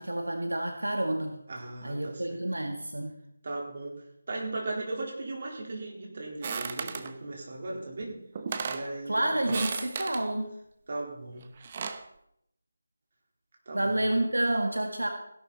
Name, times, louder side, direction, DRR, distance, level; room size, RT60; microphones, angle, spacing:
voice 1, 0.0-1.4 1.8-3.2 9.1-10.5 13.7-15.1, right 1 dB, 85° right, 4 dB, 1.8 m, -29 dB
voice 2, 1.5-2.4 3.4-3.9 4.3-8.2 8.6-9.5 10.9-11.4 13.7-14.0, right 2 dB, 50° right, -1 dB, 4.3 m, -37 dB
sound 1, 6.4-7.1 8.0-8.1 8.4-8.9 9.4-10.2 11.4-12.1, right 5 dB, 35° right, 1.1 m, -35 dB
16.5 x 11.5 x 4.3 m, 0.75 s
figure-of-eight pair, 160°, 0 cm